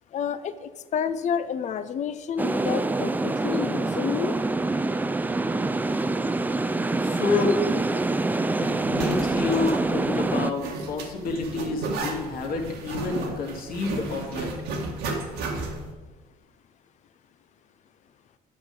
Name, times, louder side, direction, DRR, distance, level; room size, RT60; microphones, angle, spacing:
voice 1, 0.1-4.4, left 7 dB, 45° left, 12 dB, 0.5 m, -30 dB
sound 1, 2.4-10.5, right 2 dB, 10° right, 0.4 m, -25 dB
voice 2, 7.0-7.8 8.6-14.5, left 3 dB, 60° left, 1 dB, 1.9 m, -29 dB
Zipper (clothing), 8.7-15.9, right 3 dB, 85° right, 1.7 m, -33 dB
10.5 x 6.8 x 5.3 m, 1.3 s
cardioid pair, 110°, 17 cm